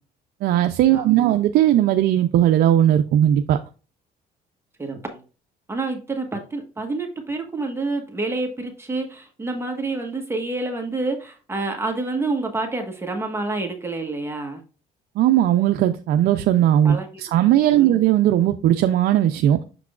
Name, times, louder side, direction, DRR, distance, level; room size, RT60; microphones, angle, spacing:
voice 1, 0.4-3.6 15.2-19.6, right 12 dB, 70° right, 0.5 m, -18 dB
voice 2, 0.9-1.4 4.8-5.2 5.7-14.6 16.8-17.2 17.7-18.0, right 3 dB, 15° right, 1.3 m, -28 dB
6.7 x 5.9 x 2.4 m
cardioid pair, 110°, 17 cm